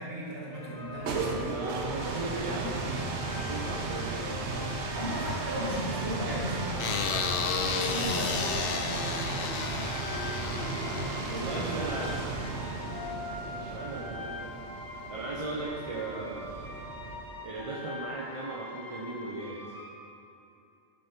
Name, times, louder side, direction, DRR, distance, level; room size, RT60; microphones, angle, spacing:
voice 1, 0.0-2.7 4.9-7.1 7.6-9.3 11.3-11.7, right 1 dB, 60° right, -6 dB, 1.9 m, -37 dB
sound 1, 0.5-19.9, left 3 dB, 25° left, 0.5 m, -43 dB
sound 2, 0.8-17.5, right 3 dB, 85° right, 1.1 m, -35 dB
voice 2, 1.4-2.8 3.2-4.1 8.1-8.6 11.3-12.2 13.5-14.5 15.1-16.9 17.4-19.6, right 3 dB, 35° right, -5 dB, 0.7 m, -37 dB
sound 3, 6.8-12.1, left 6 dB, 60° left, 0.7 m, -33 dB
9.8 x 5.2 x 4.4 m, 2.7 s
omnidirectional pair, 1.1 m